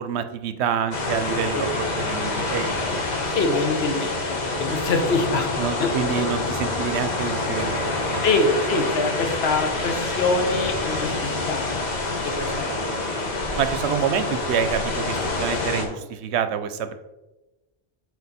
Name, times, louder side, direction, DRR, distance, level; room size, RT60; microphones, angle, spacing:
voice 1, 0.0-3.0 5.6-8.2 13.6-16.9, right 8 dB, 75° right, 10 dB, 0.9 m, -27 dB
sound 1, 0.9-15.8, left 2 dB, 40° left, 1.1 m, -27 dB
voice 2, 3.3-5.5 5.8-5.9 8.2-11.1 11.5-11.9 12.2-13.6, left 3 dB, 70° left, 5 dB, 1.0 m, -25 dB
6.7 x 4.4 x 4.1 m, 1.1 s
omnidirectional pair, 1.1 m